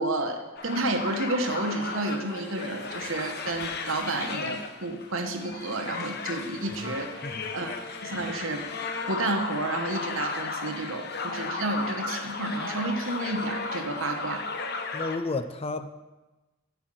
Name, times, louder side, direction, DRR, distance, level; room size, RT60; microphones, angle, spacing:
voice 1, 0.0-7.3 7.5-8.6 9.1-14.5, right 2 dB, 80° right, 4 dB, 1.2 m, -31 dB
sound 1, 0.6-15.2, left 4 dB, 55° left, 0.9 m, -35 dB
voice 2, 7.2-7.5 14.9-16.0, left 3 dB, 30° left, 10 dB, 0.5 m, -33 dB
8.0 x 6.0 x 7.7 m, 1.1 s
head